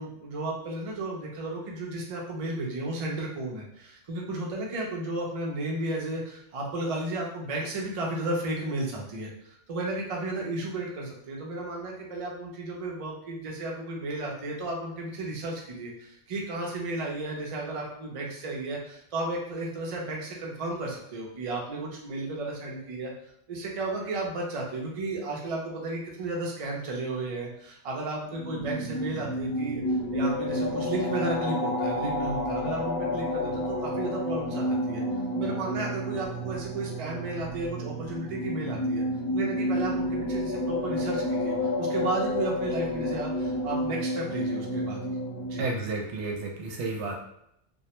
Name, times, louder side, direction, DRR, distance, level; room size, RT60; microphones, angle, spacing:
voice 1, 0.0-23.1 23.5-29.8 30.1-35.0 35.3-39.0 39.3-45.0 45.4-45.6, right 2 dB, 45° right, -2 dB, 0.5 m, -33 dB
sound 1, 28.3-45.7, left 1 dB, 60° left, 0.8 m, -30 dB
voice 2, 45.6-47.1, right 3 dB, 75° right, 0 dB, 0.9 m, -31 dB
2.2 x 2.1 x 2.8 m, 0.76 s
omnidirectional pair, 1.2 m